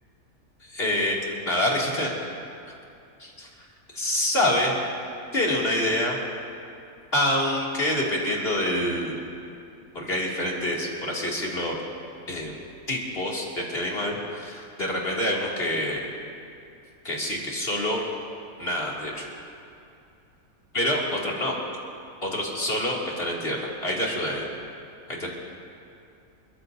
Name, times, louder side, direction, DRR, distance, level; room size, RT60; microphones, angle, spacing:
voice 1, 0.6-1.2 1.4-2.1 3.2-3.7 3.9-4.7 5.3-6.2 7.1-9.2 9.9-11.7 12.3-12.6 12.9-16.0 17.0-18.0 18.6-19.3 20.7-21.5 22.2-24.5 25.1-25.3, left 1 dB, 35° left, -4 dB, 2.8 m, -26 dB
29.5 x 14.5 x 2.7 m, 2.6 s
omnidirectional pair, 1.8 m